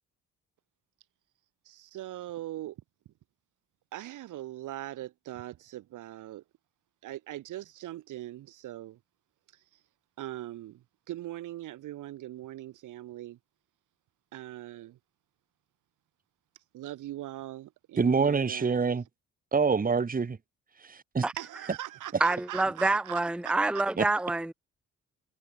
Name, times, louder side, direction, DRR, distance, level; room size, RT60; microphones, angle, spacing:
voice 1, 1.7-2.8 3.9-6.4 7.0-9.0 10.2-13.4 14.3-15.0 16.7-18.8 21.4-23.6, right 14 dB, 85° right, 7.2 m, -41 dB
voice 2, 18.0-19.0 19.5-20.4 20.8-21.3 24.0-24.1, right 5 dB, 30° right, 2.0 m, -26 dB
voice 3, 22.2-24.5, right 2 dB, 5° right, 0.7 m, -27 dB
cardioid pair, 90°, 30 cm